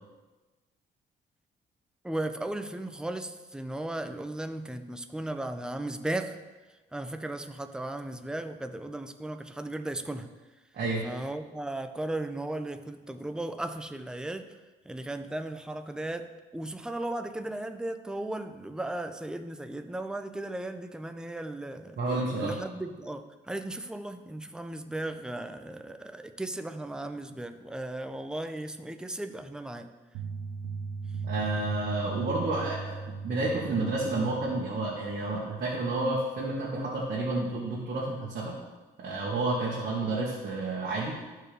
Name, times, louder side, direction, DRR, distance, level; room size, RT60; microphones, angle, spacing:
voice 1, 2.0-6.4 6.9-10.3 11.0-14.5 14.8-22.0 22.4-29.9, right 1 dB, 5° right, 8 dB, 0.5 m, -36 dB
voice 2, 22.0-22.5 31.2-38.6 39.0-41.2, right 2 dB, 50° right, -4 dB, 1.5 m, -30 dB
sound 1, 30.1-35.1, right 4 dB, 90° right, 0.7 m, -37 dB
13.5 x 4.6 x 3.3 m, 1.2 s
cardioid pair, 90°, 20 cm